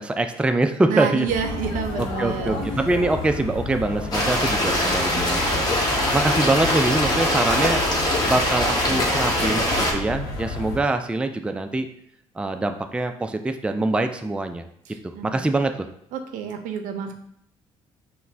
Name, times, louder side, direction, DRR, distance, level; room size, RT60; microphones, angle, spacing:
voice 1, 0.0-1.3 2.0-5.7 6.1-7.8 8.3-11.9 12.4-14.6 15.0-15.9, right 2 dB, 10° right, 7 dB, 0.3 m, -24 dB
voice 2, 0.9-2.8 14.9-15.5 16.1-17.1, right 7 dB, 75° right, 6 dB, 0.5 m, -29 dB
sound 1, 1.3-10.8, left 3 dB, 80° left, 0.8 m, -31 dB
sound 2, 4.1-9.9, left 1 dB, 30° left, 1.3 m, -22 dB
5.6 x 2.1 x 2.6 m, 0.71 s
hypercardioid pair, 55°, 14 cm